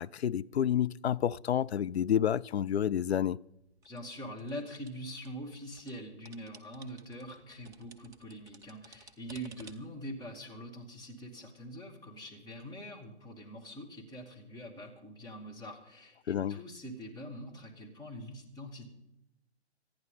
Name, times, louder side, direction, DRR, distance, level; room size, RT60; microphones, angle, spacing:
voice 1, 0.0-3.4 16.3-16.6, left 9 dB, 65° left, 0.5 m, -29 dB
sound 1, 3.4-5.9 6.2-10.0, right 4 dB, 10° right, 0.7 m, -56 dB
voice 2, 3.8-18.9, equal, 10° left, 2.4 m, -44 dB
26.0 x 10.0 x 4.0 m
figure-of-eight pair, 125°, 34 cm